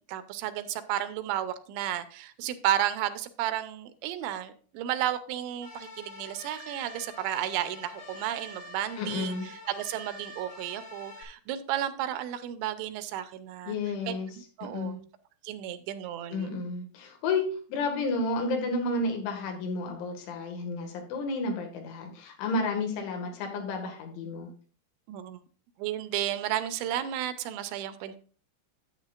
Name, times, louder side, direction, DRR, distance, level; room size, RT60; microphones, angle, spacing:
voice 1, 0.1-9.3 9.7-13.7 14.1-14.2 14.6-15.0 15.4-16.6 25.1-25.4 25.8-28.2, right 12 dB, 85° right, 12 dB, 3.0 m, -32 dB
sound 1, 5.6-11.2, left 2 dB, 60° left, 3.4 m, -46 dB
voice 2, 9.0-9.5 13.7-14.3 14.6-15.0 16.3-17.4 17.7-24.5, left 3 dB, 85° left, 3 dB, 4.3 m, -31 dB
10.5 x 8.9 x 2.5 m, 0.41 s
omnidirectional pair, 5.3 m